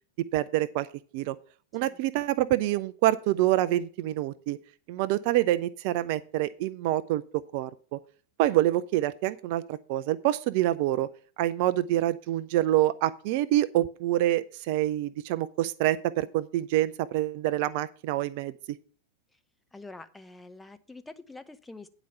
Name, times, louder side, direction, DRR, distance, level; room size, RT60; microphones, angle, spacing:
voice 1, 0.3-0.9 1.1-1.4 1.7-4.6 4.9-7.2 7.5-8.0 8.4-11.1 11.4-18.8, right 14 dB, 45° right, 15 dB, 0.4 m, -26 dB
voice 2, 19.7-21.9, left 3 dB, 10° left, 9 dB, 0.8 m, -46 dB
9.4 x 4.9 x 6.7 m, 0.42 s
figure-of-eight pair, 90°, 0 cm